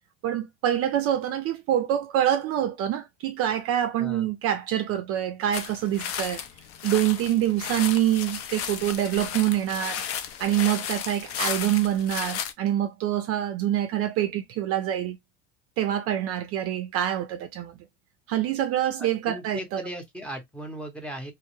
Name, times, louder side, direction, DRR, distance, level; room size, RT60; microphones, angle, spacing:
voice 1, 0.2-6.4 6.8-10.0 10.4-15.2 15.8-17.8 18.3-19.9, right 11 dB, 45° right, 0.4 m, -26 dB
sound 1, 5.5-12.5, left 8 dB, 45° left, 0.5 m, -34 dB
voice 2, 19.0-21.3, right 1 dB, 5° left, 0.7 m, -37 dB
2.1 x 2.0 x 2.9 m
supercardioid pair, 100°, 32 cm